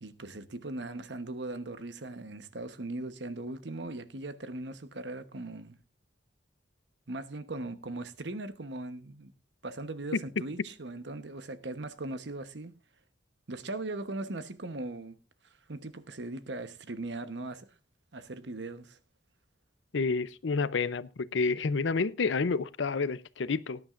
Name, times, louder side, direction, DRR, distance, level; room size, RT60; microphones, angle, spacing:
voice 1, 0.0-5.8 7.1-9.3 9.6-12.7 13.5-15.2 15.7-17.7 18.1-19.0, right 2 dB, 70° right, 1.1 m, -39 dB
voice 2, 19.9-23.8, left 4 dB, 90° left, 0.6 m, -29 dB
19.0 x 10.5 x 2.5 m
head